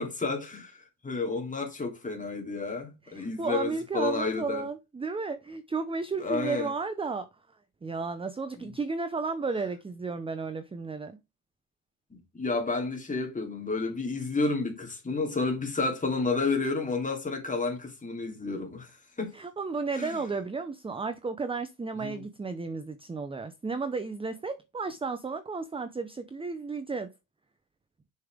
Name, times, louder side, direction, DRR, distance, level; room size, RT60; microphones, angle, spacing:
voice 1, 0.0-4.7 6.2-6.7 8.6-8.7 12.1-19.3 19.9-20.2 22.0-22.2, left 3 dB, 15° left, 2.8 m, -31 dB
voice 2, 3.1-7.3 7.8-11.2 19.3-27.1, right 4 dB, 15° right, 0.5 m, -33 dB
6.8 x 5.6 x 3.5 m
cardioid pair, 125°, 45 cm